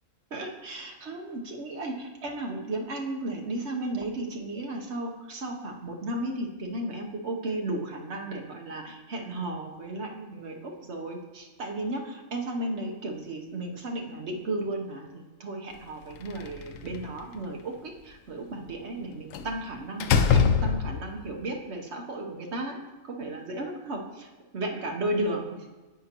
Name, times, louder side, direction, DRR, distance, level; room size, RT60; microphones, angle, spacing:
voice 1, 0.3-22.8 23.1-25.7, right 1 dB, 60° right, 1 dB, 1.2 m, -34 dB
Slam, 16.2-17.2 19.3-19.6 20.0-21.2, left 6 dB, 85° left, 1.0 m, -24 dB
9.7 x 8.9 x 2.9 m, 1.2 s
omnidirectional pair, 1.3 m